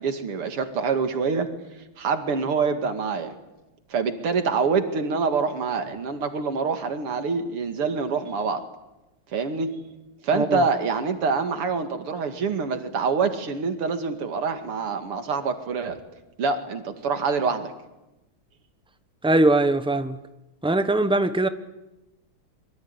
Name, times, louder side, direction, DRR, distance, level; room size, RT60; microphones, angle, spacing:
voice 1, 0.0-1.5 2.0-3.3 3.9-8.7 9.3-9.8 10.2-16.0 16.4-17.7, right 5 dB, 85° right, 3.1 m, -26 dB
voice 2, 19.2-20.2 20.6-21.5, right 2 dB, 5° right, 0.4 m, -21 dB
25.0 x 23.0 x 9.7 m
omnidirectional pair, 2.4 m